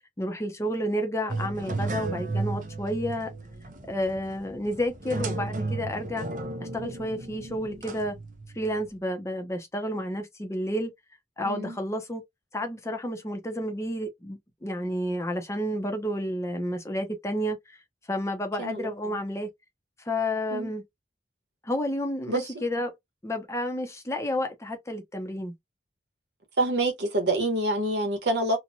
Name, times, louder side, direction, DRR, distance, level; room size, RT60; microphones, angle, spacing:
voice 1, 0.2-3.3 3.9-6.3 6.6-8.2 8.5-10.9 11.4-12.2 12.5-17.8 18.1-19.5 20.0-20.8 21.6-22.9 23.2-25.5, equal, 15° left, 0.6 m, -30 dB
sound 1, 1.3-8.9, right 3 dB, 45° right, 0.5 m, -34 dB
voice 2, 11.4-11.8 18.6-19.2 20.5-20.7 22.3-22.6 26.6-28.6, right 2 dB, 75° right, 1.1 m, -27 dB
2.9 x 2.1 x 2.5 m
head